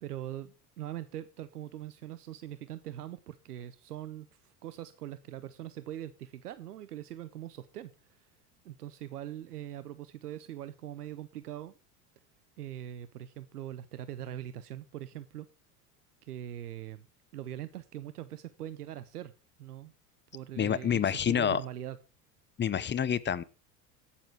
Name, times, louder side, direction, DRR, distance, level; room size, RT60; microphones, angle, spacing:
voice 1, 0.0-8.3 8.6-11.7 12.6-15.5 16.2-17.1 17.3-19.3 19.6-19.9 20.3-22.0, right 12 dB, 85° right, 14 dB, 0.8 m, -42 dB
voice 2, 20.6-21.6 22.6-23.4, left 8 dB, 25° left, 17 dB, 0.9 m, -28 dB
16.5 x 7.3 x 4.6 m, 0.31 s
hypercardioid pair, 80°, 45 cm